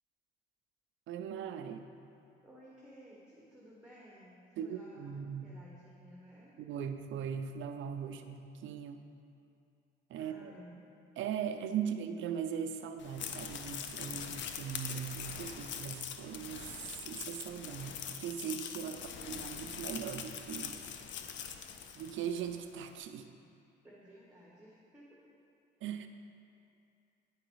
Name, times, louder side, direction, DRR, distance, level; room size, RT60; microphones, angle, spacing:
voice 1, 1.1-1.9 4.6-5.5 6.6-9.0 10.1-10.5 11.2-20.8 21.4-21.6 21.9-23.3 25.8-26.1, right 8 dB, 75° right, 7 dB, 0.5 m, -39 dB
voice 2, 2.4-6.5 10.1-10.7 11.9-12.0 18.9-19.5 23.8-25.1, equal, 5° right, -6 dB, 1.3 m, -56 dB
sound 1, 13.0-22.5, left 8 dB, 70° left, 0.5 m, -43 dB
8.9 x 4.8 x 4.7 m, 2.5 s
cardioid pair, 90°, 20 cm